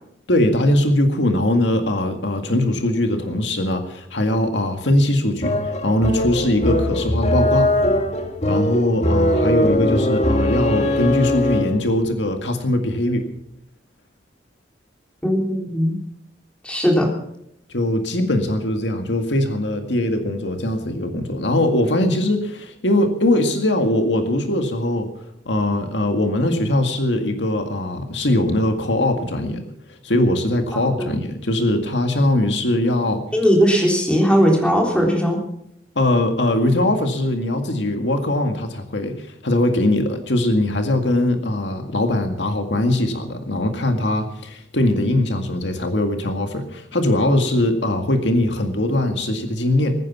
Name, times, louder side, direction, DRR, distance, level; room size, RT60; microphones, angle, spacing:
voice 1, 0.3-7.7 8.5-13.3 17.7-25.1 25.5-29.6 30.0-33.2 36.0-50.0, left 1 dB, 80° left, 5 dB, 2.0 m, -21 dB
sound 1, 5.4-11.9, left 1 dB, 40° left, 1.5 m, -20 dB
voice 2, 15.2-16.0 16.6-17.1 31.0-31.1 33.3-35.4, equal, 5° left, 0 dB, 3.6 m, -18 dB
21.0 x 9.9 x 6.0 m, 0.75 s
head